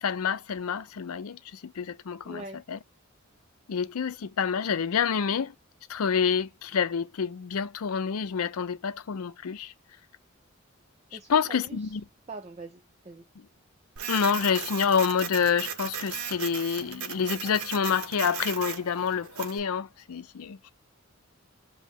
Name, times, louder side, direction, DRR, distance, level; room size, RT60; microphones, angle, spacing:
voice 1, 0.0-2.8 3.7-5.5 5.9-9.7 11.3-12.0 14.1-20.6, left 6 dB, 80° left, 0.5 m, -28 dB
voice 2, 2.2-2.6 11.1-12.0 12.3-13.3, right 2 dB, 30° right, 0.5 m, -43 dB
Printer, 14.0-19.6, right 8 dB, 80° right, 0.7 m, -37 dB
5.4 x 2.0 x 3.4 m
head